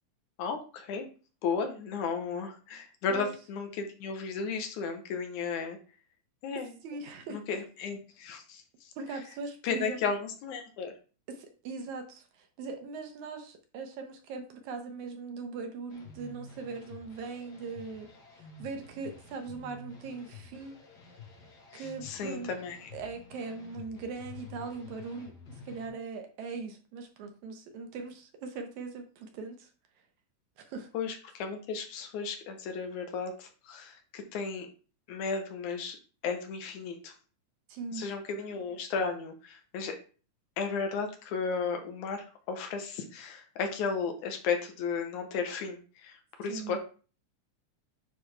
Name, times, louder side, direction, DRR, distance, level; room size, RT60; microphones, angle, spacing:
voice 1, 0.4-1.1 1.4-5.8 6.4-6.7 7.3-8.9 9.6-10.9 21.7-22.9 30.9-34.7 35.1-36.0 36.2-37.1 37.9-40.0 40.6-46.8, left 5 dB, 75° left, 5 dB, 2.2 m, -34 dB
voice 2, 6.8-7.6 9.0-10.1 11.3-18.1 18.4-20.8 21.7-22.5 22.9-29.7 30.6-30.9 37.7-38.1 46.4-46.8, right 4 dB, 70° right, 5 dB, 2.2 m, -40 dB
sound 1, 15.9-25.9, left 4 dB, 50° left, 1.2 m, -50 dB
9.5 x 3.9 x 3.3 m, 0.37 s
omnidirectional pair, 3.7 m